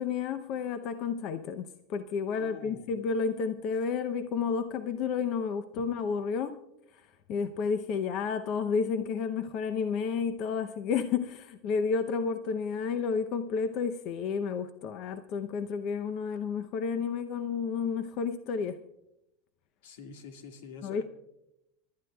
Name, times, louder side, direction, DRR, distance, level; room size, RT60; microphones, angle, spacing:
voice 1, 0.0-6.5 7.3-18.8 20.8-21.0, left 6 dB, 45° left, 9 dB, 0.6 m, -31 dB
voice 2, 2.4-3.0 5.7-5.8 19.8-21.0, left 5 dB, 85° left, 5 dB, 1.7 m, -46 dB
27.5 x 12.5 x 2.3 m, 0.84 s
supercardioid pair, 145°, 0 cm